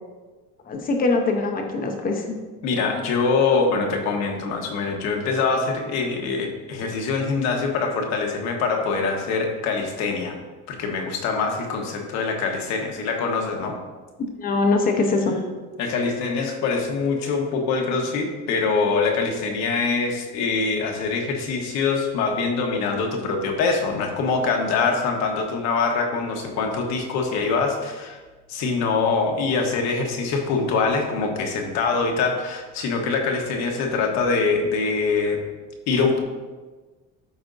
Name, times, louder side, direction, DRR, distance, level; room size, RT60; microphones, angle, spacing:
voice 1, 0.7-2.4 14.4-15.4, left 3 dB, 30° left, 4 dB, 0.8 m, -22 dB
voice 2, 2.6-10.3 10.7-13.8 15.8-28.2 28.5-35.4 35.9-36.2, left 4 dB, 60° left, 2 dB, 1.3 m, -24 dB
12.5 x 5.1 x 2.6 m, 1.3 s
cardioid pair, 170°, 31 cm